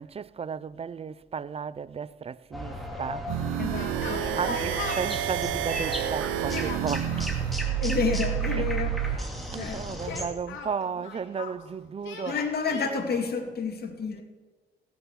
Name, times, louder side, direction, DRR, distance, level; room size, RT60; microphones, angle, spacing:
voice 1, 0.0-3.3 4.3-7.5 8.5-8.7 9.1-12.4, right 6 dB, 30° right, 0.4 m, -34 dB
sound 1, 2.5-10.3, equal, ahead, 2.5 m, -36 dB
sound 2, 3.3-9.2, right 11 dB, 90° right, 0.6 m, -29 dB
Yell, 3.6-5.2 6.3-7.3 9.9-11.6 12.0-12.9, left 5 dB, 75° left, 2.6 m, -38 dB
voice 2, 3.6-4.4 7.8-9.2 9.6-9.8 12.3-14.2, left 5 dB, 50° left, 2.3 m, -30 dB
16.5 x 7.0 x 7.4 m
cardioid pair, 90°, 20 cm